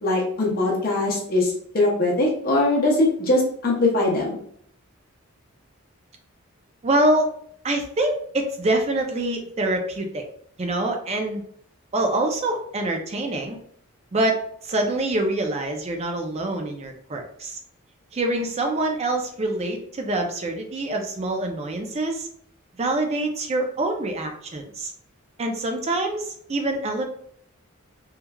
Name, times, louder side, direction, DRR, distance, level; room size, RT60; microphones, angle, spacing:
voice 1, 0.0-4.4, left 2 dB, 45° left, -3 dB, 0.7 m, -21 dB
voice 2, 6.8-7.3 7.6-10.2 10.6-11.4 11.9-13.6 14.1-17.6 18.1-22.3 22.8-24.9 25.4-27.0, right 1 dB, 30° right, 4 dB, 0.4 m, -25 dB
3.0 x 2.3 x 2.2 m, 0.65 s
head